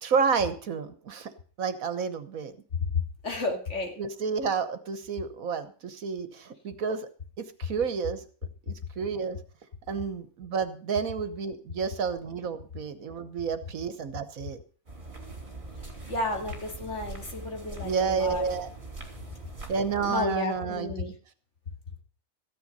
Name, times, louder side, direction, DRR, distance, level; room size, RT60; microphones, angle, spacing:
voice 1, 0.0-1.3 1.6-2.5 4.0-7.1 7.4-8.2 8.7-9.4 9.9-14.6 17.8-18.7 19.7-21.1, right 5 dB, 75° right, 11 dB, 1.6 m, -30 dB
voice 2, 3.2-3.9 16.1-18.4 20.0-21.0, left 2 dB, 55° left, 2 dB, 2.7 m, -32 dB
sound 1, 14.9-20.2, right 2 dB, 35° right, 3.1 m, -42 dB
14.5 x 10.5 x 5.4 m, 0.40 s
omnidirectional pair, 1.5 m